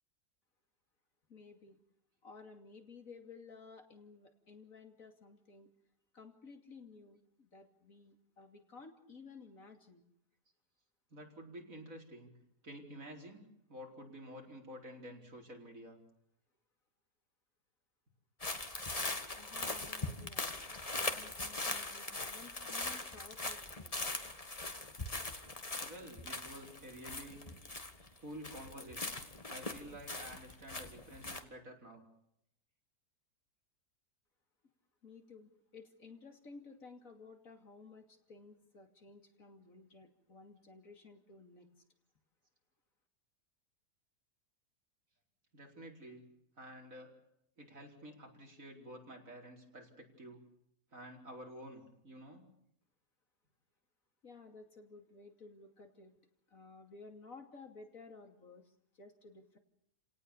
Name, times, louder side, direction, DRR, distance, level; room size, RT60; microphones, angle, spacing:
voice 1, 1.3-1.8 2.2-5.7 6.1-10.0 19.4-20.6 21.0-24.1 35.0-41.8 54.2-56.1 56.5-59.6, left 4 dB, 60° left, 5 dB, 3.1 m, -55 dB
voice 2, 11.1-12.3 12.6-13.4 13.7-16.0 25.8-27.4 28.2-32.0 45.5-46.2 46.6-47.1 47.6-50.4 50.9-52.4, equal, 60° right, 1 dB, 5.0 m, -50 dB
sound 1, 18.4-28.2 28.4-31.4, left 2 dB, 25° left, 1.8 m, -41 dB
30.0 x 18.5 x 7.1 m, 0.75 s
omnidirectional pair, 1.6 m